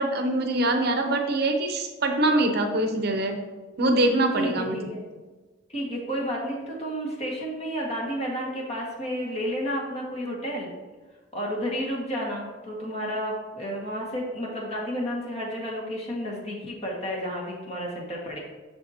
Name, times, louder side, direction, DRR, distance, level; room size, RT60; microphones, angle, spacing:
voice 1, 0.0-3.4 3.8-4.9, right 2 dB, 55° right, 4 dB, 0.7 m, -24 dB
voice 2, 4.3-5.0 5.7-10.7 11.3-18.4, equal, 35° left, -2 dB, 1.7 m, -31 dB
7.0 x 6.6 x 2.8 m, 1.3 s
head